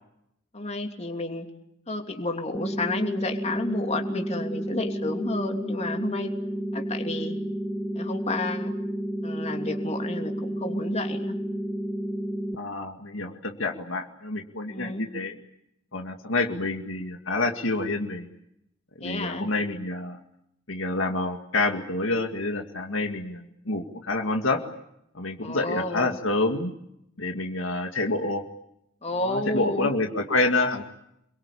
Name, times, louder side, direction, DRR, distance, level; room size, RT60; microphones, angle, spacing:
voice 1, 0.5-1.5 1.9-6.3 6.7-7.4 7.9-8.7 9.2-11.3 14.7-15.1 19.0-19.5 25.4-26.2 29.0-29.9, left 2 dB, 35° left, 4 dB, 3.0 m, -31 dB
sound 1, 2.5-12.6, equal, ahead, 1.3 m, -31 dB
voice 2, 12.6-15.3 15.9-18.3 19.0-20.2 20.7-24.6 25.1-26.7 27.2-28.4 29.1-30.8, left 2 dB, 70° left, 4 dB, 2.1 m, -28 dB
28.5 x 22.5 x 8.6 m, 0.81 s
head